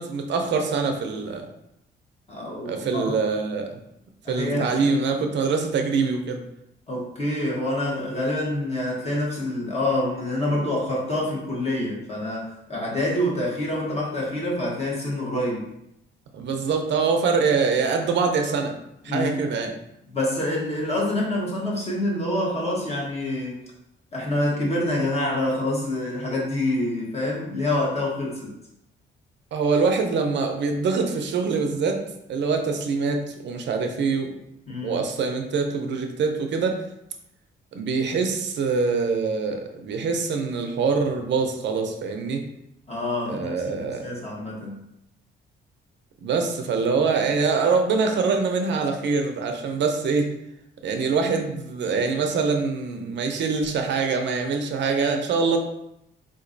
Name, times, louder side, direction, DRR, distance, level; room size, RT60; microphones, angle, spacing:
voice 1, 0.0-1.5 2.6-3.7 4.3-6.4 16.3-18.7 19.0-19.7 29.5-32.0 32.3-34.3 34.8-36.8 37.7-42.4 43.3-44.0 46.2-50.3 50.8-55.6, right 4 dB, 65° right, 5 dB, 0.5 m, -24 dB
voice 2, 2.3-3.0 4.2-5.0 6.9-15.7 19.1-19.3 20.1-23.6 24.1-28.6 34.7-35.0 42.9-44.8, left 1 dB, 30° left, -4 dB, 1.2 m, -26 dB
3.8 x 2.9 x 2.6 m, 0.82 s
cardioid pair, 90°, 20 cm